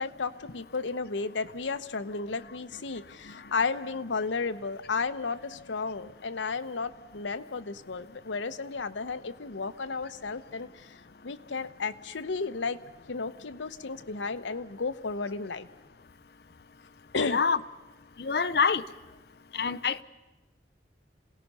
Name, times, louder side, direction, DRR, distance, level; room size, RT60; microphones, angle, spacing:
voice 1, 0.0-10.9 11.2-12.8 13.1-15.7 17.1-17.4, left 4 dB, 90° left, 11 dB, 0.8 m, -33 dB
voice 2, 17.3-17.6 18.2-18.8 19.5-20.0, left 5 dB, 60° left, 14 dB, 0.6 m, -26 dB
27.5 x 17.5 x 5.5 m, 1.1 s
head